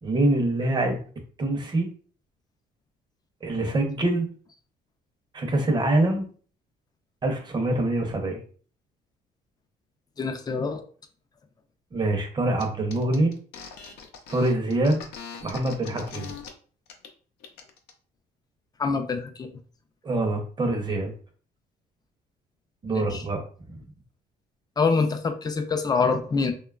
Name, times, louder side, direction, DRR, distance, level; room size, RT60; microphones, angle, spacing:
voice 1, 0.0-1.0 1.4-1.9 3.4-4.3 5.3-6.2 7.2-8.4 11.9-13.3 14.3-15.0 15.4-16.3 20.0-21.1 22.8-23.4, right 2 dB, 25° right, 4 dB, 0.7 m, -24 dB
voice 2, 10.2-10.8 18.8-19.6 22.9-23.2 24.8-26.5, left 4 dB, 25° left, 6 dB, 0.4 m, -25 dB
sound 1, 12.6-12.7 12.9-16.5 16.9-17.1 17.4-17.9, left 6 dB, 80° left, 0.6 m, -41 dB
2.9 x 2.2 x 2.3 m, 0.42 s
cardioid pair, 110°, 17 cm